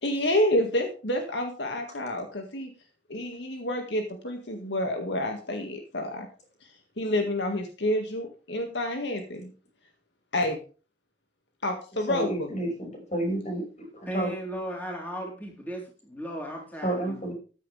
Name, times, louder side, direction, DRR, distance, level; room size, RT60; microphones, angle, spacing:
voice 1, 0.0-2.7 3.1-6.3 7.0-9.5 10.3-10.6 11.6-12.5, left 1 dB, 75° left, 4 dB, 1.9 m, -28 dB
voice 2, 12.1-13.6 13.9-14.3 16.8-17.3, right 1 dB, 40° left, 1 dB, 5.7 m, -30 dB
voice 3, 14.1-17.3, equal, 10° left, 0 dB, 3.7 m, -36 dB
14.0 x 10.0 x 3.4 m, 0.36 s
head